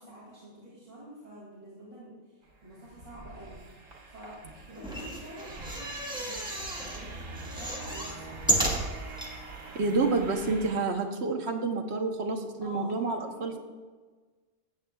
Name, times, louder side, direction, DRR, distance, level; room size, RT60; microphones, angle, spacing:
voice 1, 0.0-3.6 4.1-8.8 12.6-13.6, equal, 30° right, -8 dB, 2.6 m, -48 dB
sound 1, 2.4-10.8, right 3 dB, 80° right, 2.2 m, -44 dB
sound 2, 4.8-7.0 7.4-9.3 9.9-10.0 10.2-10.3, right 1 dB, 5° right, 1.3 m, -32 dB
voice 2, 9.7-13.6, right 3 dB, 60° right, 4 dB, 1.2 m, -29 dB
14.0 x 8.2 x 2.3 m, 1.4 s
omnidirectional pair, 1.3 m